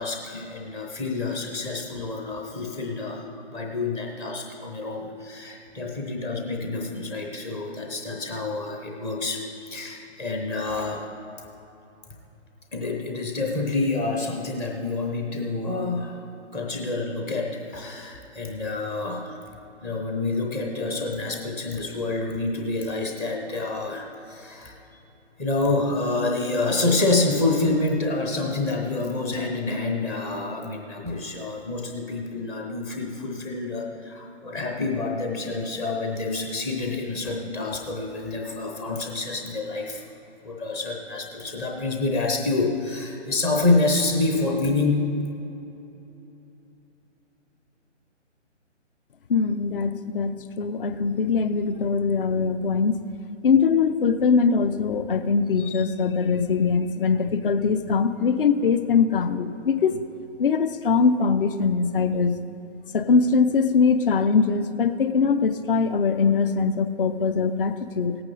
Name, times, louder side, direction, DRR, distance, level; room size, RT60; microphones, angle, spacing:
voice 1, 0.0-11.1 12.7-16.2 16.5-19.3 19.8-24.8 25.4-40.0 40.4-45.1, left 3 dB, 10° left, 1 dB, 0.5 m, -27 dB
voice 2, 49.3-53.0 53.4-60.0 60.4-62.3 62.9-68.2, left 5 dB, 50° left, 11 dB, 0.7 m, -22 dB
17.5 x 8.8 x 4.0 m, 2.9 s
figure-of-eight pair, 140°, 36 cm